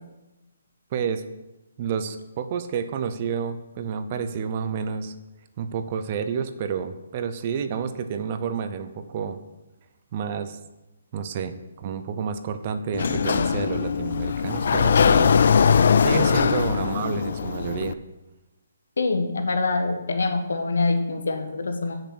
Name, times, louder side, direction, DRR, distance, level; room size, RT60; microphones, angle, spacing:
voice 1, 0.9-1.2 1.8-5.1 5.6-9.4 10.1-10.6 11.1-15.7 16.0-18.0, right 7 dB, 35° right, 9 dB, 0.7 m, -30 dB
Sliding door, 12.9-17.9, left 6 dB, 60° left, 0.4 m, -21 dB
voice 2, 19.0-22.0, left 3 dB, 80° left, 6 dB, 1.5 m, -25 dB
8.2 x 6.6 x 6.1 m, 1.0 s
hypercardioid pair, 160°, 0 cm